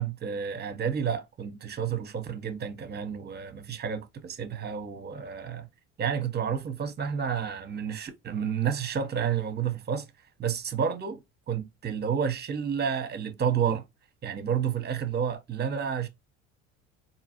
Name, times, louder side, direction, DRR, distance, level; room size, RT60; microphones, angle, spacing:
voice 1, 0.0-5.7 6.0-10.0 10.4-11.2 11.5-13.8 14.2-16.1, right 7 dB, 30° right, 0.8 m, -30 dB
3.9 x 2.8 x 2.8 m
hypercardioid pair, 75°, 33 cm